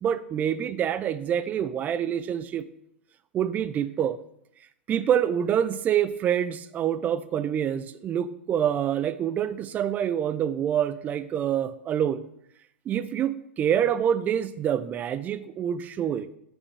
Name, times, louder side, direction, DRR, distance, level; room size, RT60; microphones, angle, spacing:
voice 1, 0.0-2.6 3.3-4.2 4.9-12.2 12.9-16.3, right 9 dB, 25° right, 14 dB, 0.4 m, -26 dB
5.9 x 5.3 x 3.4 m, 0.75 s
figure-of-eight pair, 100°, 7 cm